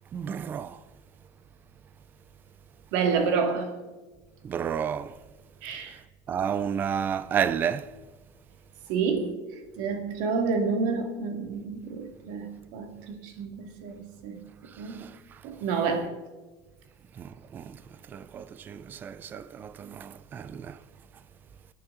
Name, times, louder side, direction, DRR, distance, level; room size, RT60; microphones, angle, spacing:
voice 1, 0.1-0.8 4.4-5.1 6.3-7.9 14.9-15.2 17.2-17.8 18.1-20.8, right 8 dB, 20° right, 0.4 m, -31 dB
voice 2, 2.9-3.7 5.6-6.0 8.9-9.4 9.8-14.5 14.8-15.0 15.4-16.1, right 5 dB, 65° right, 1.9 m, -29 dB
25.5 x 9.0 x 3.7 m
cardioid pair, 180°, 10 cm